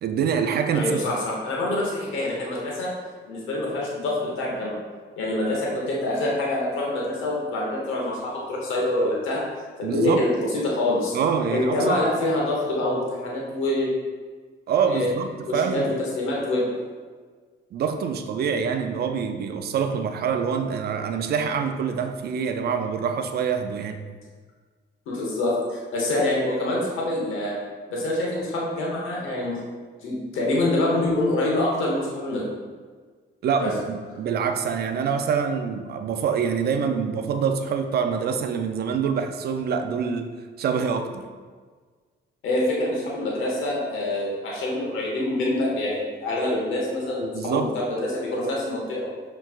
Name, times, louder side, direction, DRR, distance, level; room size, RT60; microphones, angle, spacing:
voice 1, 0.0-1.0 9.8-10.3 11.1-12.0 14.7-15.9 17.7-24.1 33.4-40.3 40.6-41.2 47.3-47.7, right 6 dB, 55° right, 7 dB, 0.4 m, -25 dB
voice 2, 0.7-2.9 3.3-4.8 5.2-9.4 9.8-10.3 10.6-11.2 11.4-13.9 14.9-15.1 15.5-15.8 16.1-16.8 25.1-27.6 27.9-29.6 30.0-32.4 33.6-33.7 42.4-49.1, left 1 dB, 90° left, -4 dB, 1.0 m, -25 dB
5.6 x 3.1 x 2.4 m, 1.5 s
cardioid pair, 90°, 20 cm